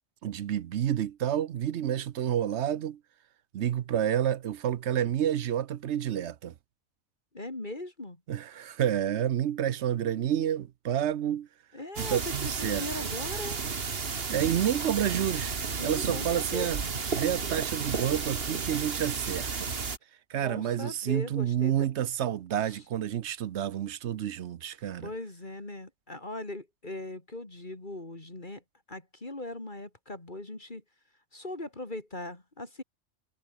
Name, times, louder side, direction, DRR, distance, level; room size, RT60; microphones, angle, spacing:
voice 1, 0.2-3.0 3.5-6.5 8.3-11.5 12.0-13.1 14.3-16.8 17.1-19.7 20.3-25.1, right 10 dB, 60° right, 0.9 m, -29 dB
voice 2, 7.3-8.2 11.7-13.6 15.8-16.7 20.3-21.9 22.6-22.8 25.0-28.6 28.9-30.8 31.3-32.8, left 2 dB, 35° left, 3.2 m, -39 dB
sound 1, 12.0-20.0, right 5 dB, 45° right, 1.7 m, -33 dB
omnidirectional pair, 1.4 m